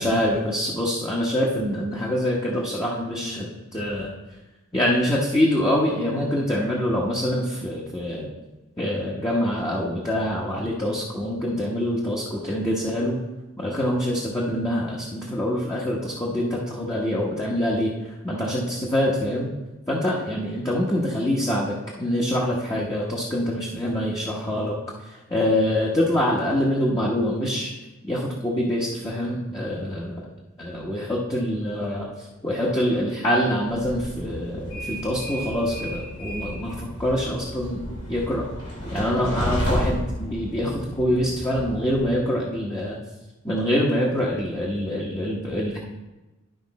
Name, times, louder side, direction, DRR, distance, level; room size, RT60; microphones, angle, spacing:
voice 1, 0.0-3.5 3.7-4.1 4.7-8.3 8.8-13.2 13.6-17.9 18.2-19.5 19.9-24.7 25.3-27.7 28.1-30.2 30.6-32.0 32.4-37.8 38.1-38.4 38.9-42.9 43.4-45.8, equal, 15° left, -5 dB, 1.0 m, -25 dB
Train, 33.7-42.0, equal, 85° left, 3.1 m, -32 dB
12.0 x 5.1 x 4.1 m, 1.1 s
head